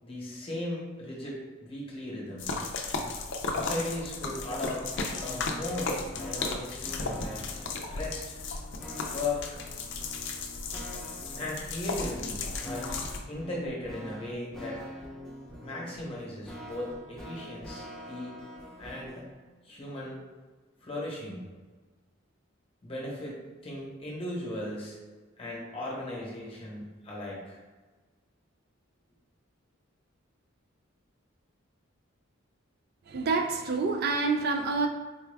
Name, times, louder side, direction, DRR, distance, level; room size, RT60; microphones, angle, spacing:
voice 1, 0.0-2.5 3.4-4.9 5.2-7.5 7.9-8.4 9.1-9.6 11.4-13.0 13.3-14.9 15.6-18.4 18.8-19.2 19.6-20.2 20.8-21.5 22.8-25.0 25.4-27.6, left 1 dB, 30° left, -3 dB, 0.9 m, -37 dB
sound 1, 2.4-13.2, left 3 dB, 60° left, 0.5 m, -35 dB
sound 2, 4.0-19.3, left 1 dB, 5° left, 0.6 m, -45 dB
voice 2, 33.1-34.9, right 4 dB, 50° right, 4 dB, 0.3 m, -27 dB
4.1 x 2.3 x 3.3 m, 1.3 s
head